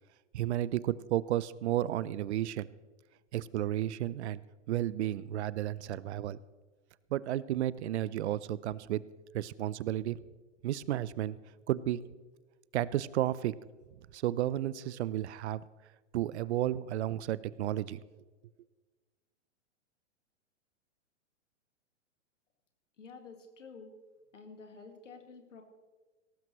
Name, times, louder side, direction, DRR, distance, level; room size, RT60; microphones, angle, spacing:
voice 1, 0.3-2.7 3.3-4.4 4.7-6.4 7.1-9.0 9.3-10.2 10.6-11.4 11.7-12.0 12.7-13.5 14.1-15.6 16.1-18.0, right 13 dB, 65° right, 19 dB, 0.6 m, -32 dB
voice 2, 23.0-23.9 24.3-25.6, left 4 dB, 85° left, 5 dB, 2.2 m, -50 dB
17.5 x 15.0 x 3.1 m, 1.3 s
hypercardioid pair, 115°, 36 cm